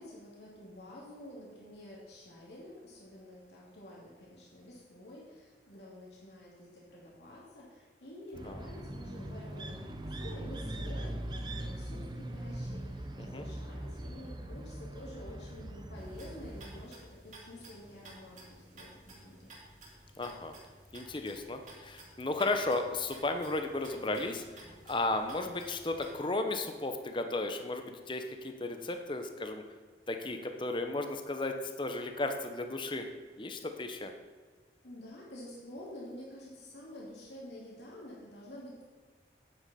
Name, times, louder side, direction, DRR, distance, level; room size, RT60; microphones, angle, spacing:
voice 1, 0.0-19.5 34.8-38.8, left 1 dB, 75° left, -4 dB, 2.6 m, -49 dB
sound 1, 8.3-16.9, right 1 dB, 25° right, 0.7 m, -41 dB
sound 2, 16.0-26.2, right 2 dB, 45° right, 2.7 m, -54 dB
voice 2, 20.2-20.5 20.9-29.6 30.1-33.0 33.4-34.1, left 2 dB, 30° left, 6 dB, 0.8 m, -34 dB
9.2 x 8.9 x 4.3 m, 1.5 s
head